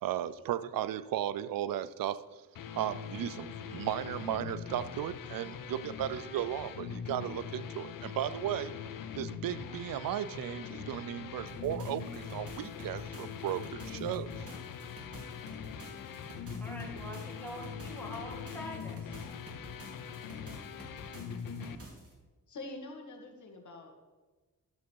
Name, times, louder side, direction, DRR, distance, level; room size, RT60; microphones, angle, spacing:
voice 1, 0.0-2.4 2.7-8.7 9.2-14.5, right 11 dB, 85° right, 16 dB, 0.5 m, -35 dB
sound 1, 2.6-21.8, left 7 dB, 75° left, 0.7 m, -42 dB
sound 2, 11.5-22.1, right 2 dB, 45° right, 2.7 m, -51 dB
voice 2, 16.6-19.3, equal, 5° left, -2 dB, 2.4 m, -44 dB
voice 3, 22.5-24.0, left 2 dB, 60° left, 3 dB, 1.7 m, -46 dB
11.5 x 7.1 x 4.6 m, 1.3 s
wide cardioid pair, 135°, 33 cm